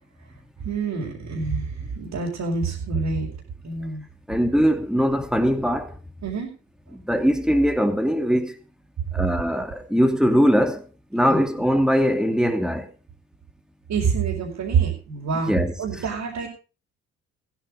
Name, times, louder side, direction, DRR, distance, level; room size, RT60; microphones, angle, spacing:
voice 1, 0.6-3.3 3.6-4.0 6.2-6.5 11.3-11.4 13.9-15.5 15.8-16.5, right 5 dB, 55° right, 5.5 m, -26 dB
voice 2, 4.3-6.0 6.9-8.6 9.1-10.9 11.1-12.9 15.3-15.7, equal, ahead, 2.7 m, -21 dB
16.0 x 9.6 x 5.2 m
hypercardioid pair, 45°, 33 cm